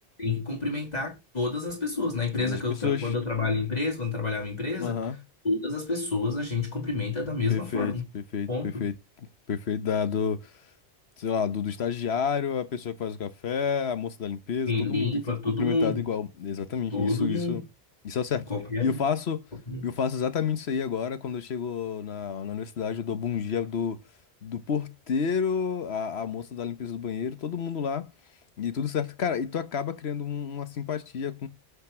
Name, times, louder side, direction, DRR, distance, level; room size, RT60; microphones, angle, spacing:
voice 1, 0.2-5.0 5.4-8.0 8.5-8.9 14.7-16.0 16.9-17.6 18.5-19.0 19.7-19.8, left 3 dB, 40° left, 2.1 m, -29 dB
voice 2, 2.4-3.1 4.8-5.2 7.5-8.9 9.2-10.5 11.2-15.1 15.6-17.6 18.0-18.5 18.8-19.4 19.8-24.0 24.4-28.1 28.6-31.5, left 7 dB, 90° left, 1.3 m, -30 dB
8.7 x 6.0 x 6.0 m
omnidirectional pair, 1.0 m